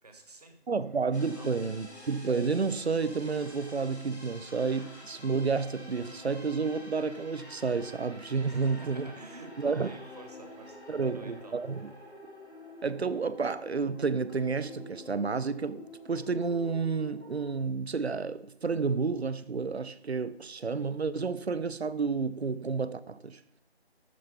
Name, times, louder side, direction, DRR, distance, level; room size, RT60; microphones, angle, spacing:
voice 1, 0.0-0.6 1.3-1.5 8.5-11.6, right 2 dB, 35° right, 1.4 m, -50 dB
voice 2, 0.7-9.1 9.6-9.9 10.9-11.9 12.8-23.4, right 4 dB, 75° right, 0.7 m, -30 dB
sound 1, 0.8-2.8 3.2-5.6 5.9-6.8 7.2-8.2 8.5-10.2, left 1 dB, 20° left, 0.9 m, -61 dB
sound 2, 1.1-17.5, left 1 dB, 85° left, 2.7 m, -48 dB
13.0 x 4.5 x 5.2 m
figure-of-eight pair, 160°, 33 cm